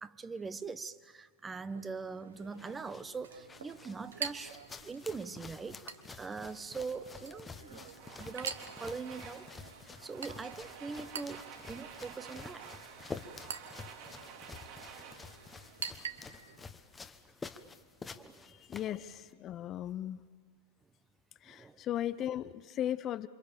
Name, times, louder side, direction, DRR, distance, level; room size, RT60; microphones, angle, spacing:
voice 1, 0.0-4.6 4.8-5.8 6.1-7.8 8.2-9.5 10.0-12.7 18.2-18.5 21.5-21.8, right 4 dB, 15° right, 14 dB, 1.0 m, -42 dB
Chink clink, 1.7-16.7, right 6 dB, 75° right, 1.5 m, -47 dB
sound 1, 2.3-19.3, left 4 dB, 15° left, 1.2 m, -50 dB
Domestic sounds home sounds, 7.7-16.6, right 7 dB, 50° right, 4.1 m, -51 dB
voice 2, 18.5-20.2 21.4-23.3, left 11 dB, 35° left, 14 dB, 0.7 m, -37 dB
28.0 x 26.0 x 7.4 m, 1.5 s
hypercardioid pair, 100°, 0 cm